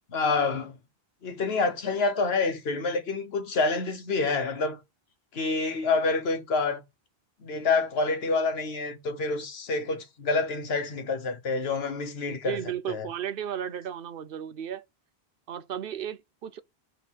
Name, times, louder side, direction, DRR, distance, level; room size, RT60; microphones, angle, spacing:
voice 1, 0.1-0.8 1.2-4.8 5.3-6.8 7.4-12.6 12.9-13.1, left 3 dB, 70° left, 1.2 m, -27 dB
voice 2, 12.3-14.8 15.5-16.6, right 9 dB, 60° right, 0.8 m, -34 dB
7.2 x 3.4 x 6.1 m
omnidirectional pair, 1.1 m